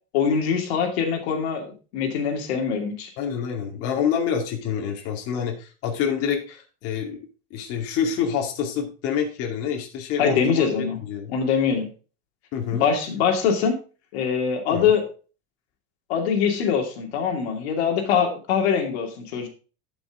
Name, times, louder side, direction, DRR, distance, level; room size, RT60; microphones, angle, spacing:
voice 1, 0.1-3.1 10.2-11.0 11.3-11.9 12.7-13.7 14.1-15.0 16.1-19.5, left 7 dB, 90° left, 2 dB, 2.6 m, -23 dB
voice 2, 3.2-7.2 7.5-11.3 12.5-12.8 14.7-14.9, left 7 dB, 50° left, 1 dB, 2.3 m, -27 dB
11.5 x 6.1 x 3.7 m, 0.35 s
cardioid pair, 160°, 31 cm